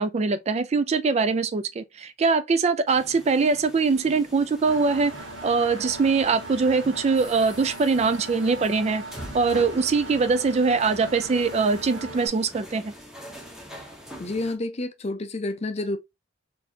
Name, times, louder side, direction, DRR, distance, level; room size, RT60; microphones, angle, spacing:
voice 1, 0.0-5.1 5.4-9.0 9.3-12.9, right 4 dB, 35° right, 0.3 m, -22 dB
sound 1, 2.9-14.6, equal, 5° right, 0.9 m, -44 dB
Engine, 4.7-12.3, right 2 dB, 70° right, 1.3 m, -39 dB
voice 2, 14.2-16.0, left 2 dB, 30° left, 0.5 m, -29 dB
4.2 x 2.7 x 2.8 m
head